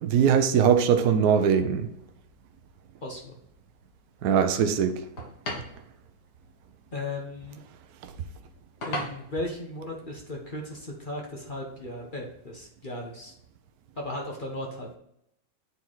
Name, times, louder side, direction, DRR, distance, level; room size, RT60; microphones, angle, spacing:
voice 1, 0.0-1.9 4.2-5.0, right 7 dB, 60° right, 1.0 m, -21 dB
sound 1, 0.7-11.5, left 1 dB, 55° left, 2.1 m, -44 dB
voice 2, 3.0-3.4 6.9-7.6 8.8-13.3 14.0-15.0, left 1 dB, 30° left, 1.0 m, -36 dB
8.5 x 4.6 x 3.9 m
omnidirectional pair, 2.3 m